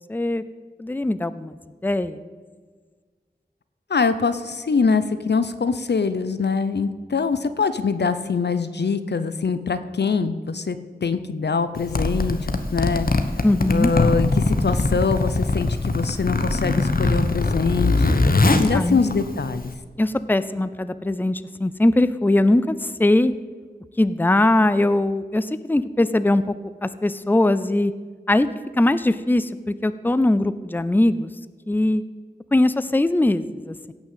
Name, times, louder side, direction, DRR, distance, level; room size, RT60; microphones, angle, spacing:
voice 1, 0.1-0.4 0.8-1.6 1.8-2.2 13.4-13.9 18.7-19.0 20.0-23.3 24.0-26.5 26.8-27.9 28.3-28.5 28.8-31.3 31.7-32.0 32.5-33.9, left 1 dB, 10° left, 14 dB, 0.5 m, -20 dB
voice 2, 3.9-13.1 13.7-18.2 18.6-19.7, left 5 dB, 85° left, 12 dB, 0.7 m, -23 dB
Zipper (clothing), 11.8-19.7, left 2 dB, 60° left, 1.1 m, -22 dB
16.5 x 6.2 x 7.5 m, 1.5 s
wide cardioid pair, 70°, 17 cm